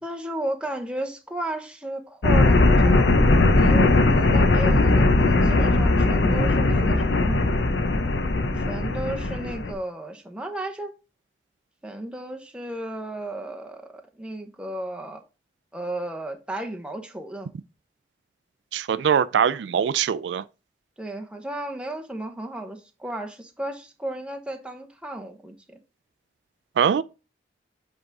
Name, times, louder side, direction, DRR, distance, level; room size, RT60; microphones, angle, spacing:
voice 1, 0.0-7.4 8.6-10.9 11.8-15.2 15.7-17.5 21.0-25.8, right 1 dB, 5° right, 0.8 m, -34 dB
sound 1, 2.2-9.7, left 2 dB, 85° left, 0.8 m, -19 dB
voice 2, 18.7-20.4 26.8-27.0, right 7 dB, 80° right, 0.3 m, -22 dB
7.9 x 3.6 x 3.9 m
head